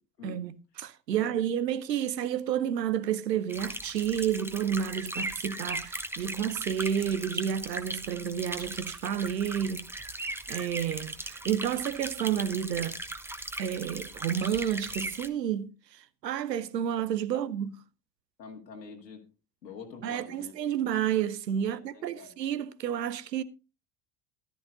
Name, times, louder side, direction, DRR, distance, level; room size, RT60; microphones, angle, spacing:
voice 1, 0.2-9.9 10.5-13.0 13.6-17.7 20.0-23.4, right 9 dB, 80° right, 0.7 m, -30 dB
sound 1, 3.5-15.3, right 1 dB, 5° right, 0.9 m, -38 dB
voice 2, 18.4-19.3 19.6-20.8 21.6-22.3, left 5 dB, 80° left, 2.2 m, -46 dB
14.0 x 12.0 x 2.6 m
figure-of-eight pair, 60°, 49 cm